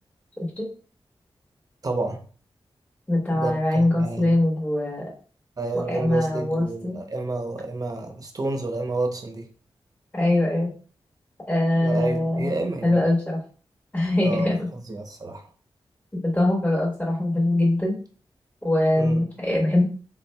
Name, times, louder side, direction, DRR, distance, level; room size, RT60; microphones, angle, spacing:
voice 1, 0.4-0.7 3.1-5.1 5.7-7.0 10.1-10.7 11.5-13.4 13.9-14.7 16.1-18.0 18.6-19.8, left 1 dB, 15° left, -3 dB, 1.1 m, -23 dB
voice 2, 1.8-2.2 3.3-4.4 5.6-9.5 11.8-13.0 14.2-15.5 19.0-19.2, right 2 dB, 40° right, 4 dB, 0.8 m, -30 dB
4.2 x 3.6 x 2.3 m, 0.40 s
wide cardioid pair, 100°, 9 cm